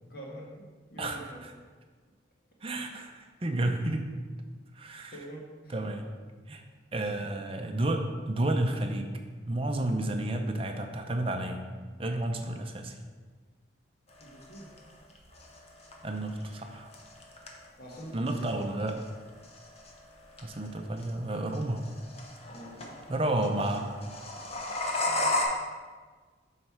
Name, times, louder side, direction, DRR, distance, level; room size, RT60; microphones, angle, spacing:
voice 1, 0.1-0.6 0.9-1.5 2.8-3.0 5.1-5.7 7.0-7.3 14.2-14.7 17.8-18.7 22.5-22.9 25.0-25.3, right 1 dB, 50° left, -3 dB, 1.5 m, -45 dB
voice 2, 2.6-4.0 4.8-5.1 5.7-6.1 6.5-6.6 6.9-9.1 9.5-11.6 12.0-13.0 16.0-16.9 18.1-19.0 20.4-21.8 23.1-23.9, right 1 dB, 30° right, 4 dB, 0.6 m, -31 dB
sound 1, 14.1-25.4, left 2 dB, 35° left, 0.8 m, -36 dB
7.6 x 3.3 x 5.8 m, 1.5 s
head